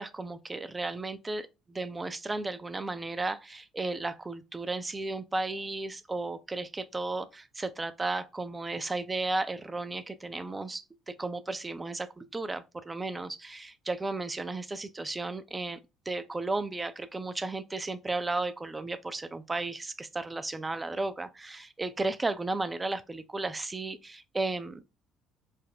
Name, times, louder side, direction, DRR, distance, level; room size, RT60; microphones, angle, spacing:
voice 1, 0.0-15.8 16.1-24.8, right 2 dB, 20° right, 0.4 m, -34 dB
4.0 x 2.1 x 3.3 m
figure-of-eight pair, 50°, 0 cm